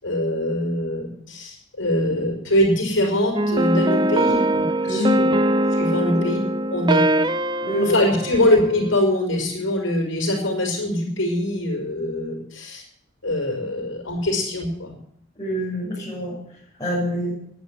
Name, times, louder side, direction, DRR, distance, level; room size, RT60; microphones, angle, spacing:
voice 1, 0.0-5.4 5.7-6.4 6.7-7.0 7.8-12.8 13.2-14.9, left 1 dB, 75° left, -1 dB, 5.6 m, -23 dB
sound 1, 3.3-9.0, right 1 dB, 20° right, 0.5 m, -22 dB
voice 2, 4.8-5.3 6.1-6.2 7.6-8.3 15.4-16.4 16.8-17.3, left 1 dB, 20° left, -8 dB, 6.6 m, -25 dB
11.5 x 10.5 x 9.6 m, 0.68 s
head